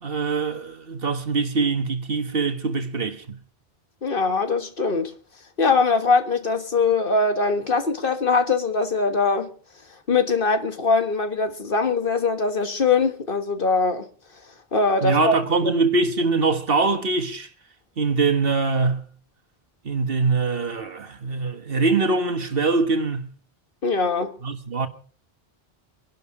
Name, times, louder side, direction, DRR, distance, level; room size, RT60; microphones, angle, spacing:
voice 1, 0.0-3.4 15.0-17.5 18.0-19.1 19.8-23.3 24.4-24.9, right 3 dB, 65° right, 1.7 m, -23 dB
voice 2, 4.0-5.1 5.6-9.5 10.1-14.1 14.7-15.7 23.8-24.3, left 4 dB, 60° left, 1.7 m, -22 dB
23.5 x 11.5 x 4.9 m
omnidirectional pair, 1.0 m